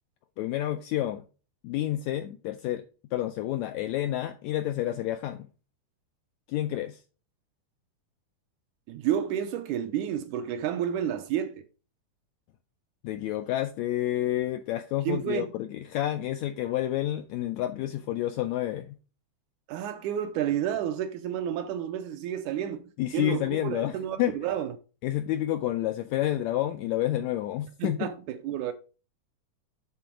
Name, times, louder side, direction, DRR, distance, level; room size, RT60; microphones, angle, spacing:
voice 1, 0.4-1.2 1.6-2.8 3.1-5.5 6.5-7.0 13.0-19.0 23.0-24.3 25.0-28.1, left 13 dB, 80° left, 1.6 m, -29 dB
voice 2, 8.9-11.6 15.1-15.5 19.7-24.8 27.8-28.7, right 10 dB, 80° right, 2.0 m, -30 dB
9.5 x 3.8 x 4.5 m
omnidirectional pair, 3.7 m